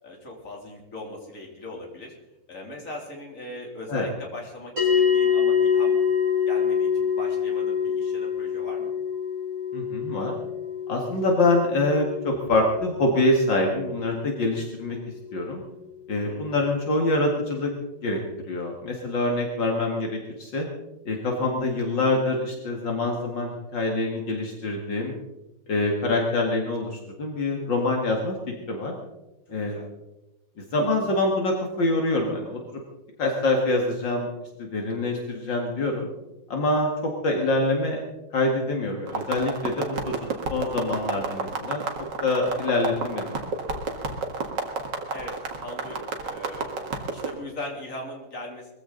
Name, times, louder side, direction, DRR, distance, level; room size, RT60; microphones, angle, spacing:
voice 1, 0.0-2.2 2.5-6.0 6.5-8.9 16.1-16.5 29.5-29.9 45.1-46.8 47.1-48.7, left 1 dB, 40° left, 0 dB, 3.6 m, -39 dB
sound 1, 4.8-15.3, left 7 dB, 45° right, 6.0 m, -26 dB
voice 2, 9.7-10.3 10.9-15.0 15.3-15.6 16.1-17.7 18.0-20.7 21.1-25.1 25.7-28.4 28.7-28.9 29.5-29.8 30.7-32.6 33.2-34.3 34.6-36.1 36.5-36.9 37.2-38.0 38.3-40.2 40.5-41.8 42.2-43.4, left 2 dB, 70° left, 1 dB, 2.7 m, -25 dB
sound 2, 39.1-47.3, right 4 dB, 65° right, 2.4 m, -31 dB
22.0 x 15.0 x 4.0 m, 0.96 s
omnidirectional pair, 2.1 m